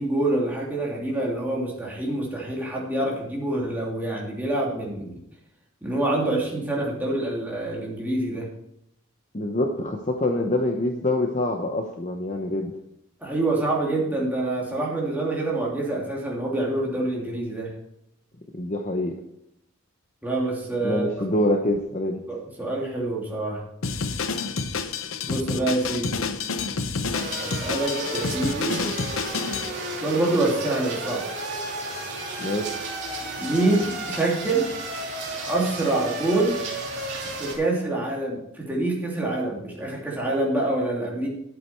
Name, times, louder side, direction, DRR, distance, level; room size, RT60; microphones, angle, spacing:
voice 1, 0.0-5.2 5.8-8.5 13.2-17.7 20.2-21.2 22.3-23.6 25.3-26.2 27.4-28.9 29.9-31.3 33.4-34.7 35.4-36.6 37.2-41.3, right 2 dB, 10° right, -4 dB, 2.8 m, -26 dB
voice 2, 9.3-12.8 18.5-19.2 20.8-22.2 32.4-32.8, left 1 dB, 35° left, 3 dB, 0.9 m, -25 dB
Drum kit, 23.8-29.7, left 4 dB, 70° left, 0.8 m, -29 dB
sound 1, 27.1-37.6, right 2 dB, 55° right, 3.1 m, -32 dB
11.0 x 8.5 x 4.6 m, 0.80 s
head